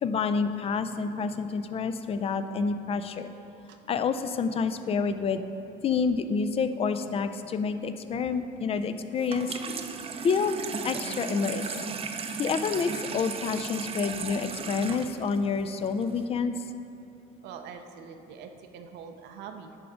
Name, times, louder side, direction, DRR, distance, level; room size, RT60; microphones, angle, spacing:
voice 1, 0.0-3.3 3.9-5.4 5.8-9.6 10.2-10.6 10.8-11.9 12.4-16.7, left 5 dB, 35° left, 10 dB, 0.4 m, -28 dB
Water tap faucet / Sink (filling or washing), 9.2-16.2, right 5 dB, 35° right, 0.5 m, -36 dB
voice 2, 17.4-19.8, right 6 dB, 85° right, 6 dB, 0.6 m, -44 dB
10.0 x 3.5 x 5.0 m, 2.8 s
cardioid pair, 110°, 17 cm